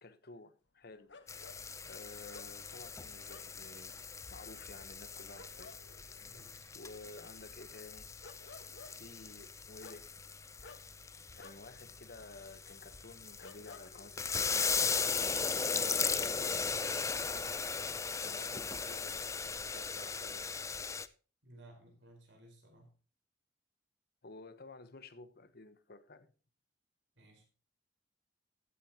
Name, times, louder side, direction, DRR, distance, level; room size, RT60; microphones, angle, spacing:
voice 1, 0.0-1.1 1.8-4.0 4.3-5.8 6.0-6.3 6.7-8.1 8.9-10.1 11.3-14.9 15.2-16.7 17.3-17.6 18.2-20.5 24.2-26.3, left 3 dB, 60° left, 1.0 m, -53 dB
sound 1, 1.1-16.3 16.6-17.3, left 3 dB, 75° left, 1.2 m, -57 dB
sound 2, 1.3-21.1, left 5 dB, 15° left, 0.5 m, -38 dB
voice 2, 6.2-6.7 21.4-22.9 27.2-27.5, right 1 dB, 85° right, 4.5 m, -58 dB
15.0 x 8.3 x 2.9 m
head